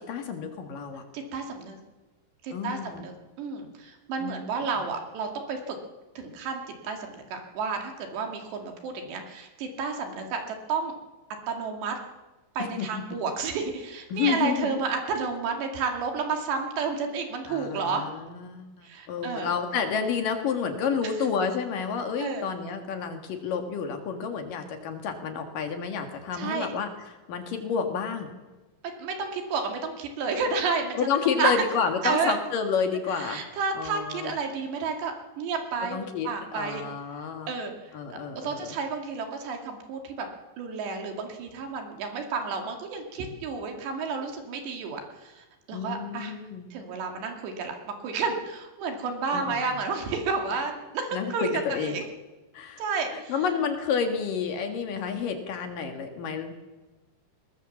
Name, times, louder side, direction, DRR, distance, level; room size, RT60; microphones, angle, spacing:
voice 1, 0.0-1.0 2.5-3.1 4.2-4.4 12.7-12.9 14.1-14.7 17.5-28.3 31.0-33.4 33.8-34.4 35.9-37.5 37.9-38.8 45.7-46.7 49.3-49.6 51.1-52.0 52.5-52.8 53.1-56.5, left 6 dB, 55° left, 5 dB, 3.0 m, -30 dB
voice 2, 1.1-1.8 2.4-5.8 6.2-10.9 11.5-12.0 12.6-18.0 18.8-19.5 22.2-22.4 26.3-26.7 29.0-31.1 31.4-31.5 32.0-32.4 33.2-36.8 37.5-37.7 38.4-40.3 40.6-46.3 46.7-47.8 48.0-52.1 52.8-53.3, right 5 dB, 70° right, 4 dB, 4.5 m, -31 dB
20.5 x 20.0 x 7.3 m, 1.2 s
omnidirectional pair, 5.2 m